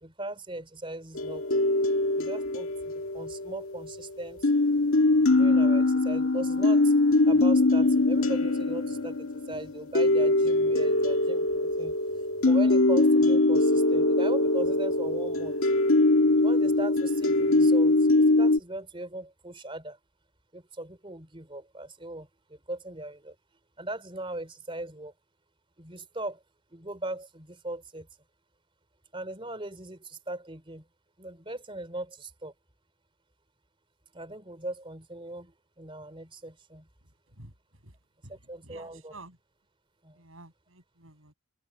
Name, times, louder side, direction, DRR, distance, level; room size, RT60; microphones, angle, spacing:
voice 1, 0.0-1.6 2.1-4.5 5.3-6.9 7.3-12.0 12.4-15.6 16.4-20.0 20.5-23.4 23.8-25.1 25.8-26.4 26.7-28.1 29.1-30.9 31.2-32.5 34.1-36.9 38.3-39.1 40.0-40.2, right 1 dB, 25° right, 3.6 m, -38 dB
sound 1, 1.2-4.0 4.4-18.6, left 2 dB, 75° left, 1.8 m, -23 dB
voice 2, 38.6-39.4 40.1-41.3, right 2 dB, 65° right, 7.1 m, -50 dB
head